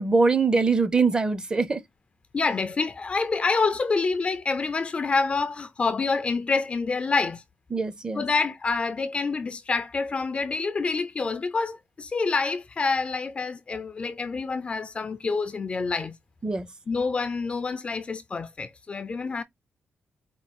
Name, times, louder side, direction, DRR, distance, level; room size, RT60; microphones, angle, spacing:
voice 1, 0.0-1.8 7.7-8.2 16.4-16.7, right 4 dB, 20° right, 0.6 m, -23 dB
voice 2, 2.3-7.4 8.1-16.2 16.9-19.4, left 4 dB, 30° left, 0.4 m, -27 dB
4.5 x 2.3 x 4.1 m
wide cardioid pair, 150°, 4 cm